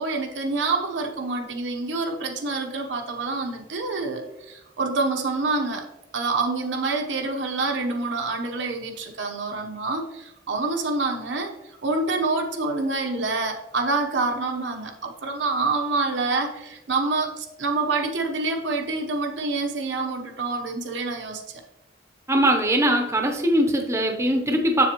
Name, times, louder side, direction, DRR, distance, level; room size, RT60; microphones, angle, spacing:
voice 1, 0.0-5.9 6.1-21.4, right 3 dB, 80° right, 3 dB, 0.9 m, -27 dB
voice 2, 22.3-24.9, right 1 dB, 15° right, 3 dB, 0.7 m, -21 dB
7.2 x 7.0 x 3.0 m, 0.93 s
head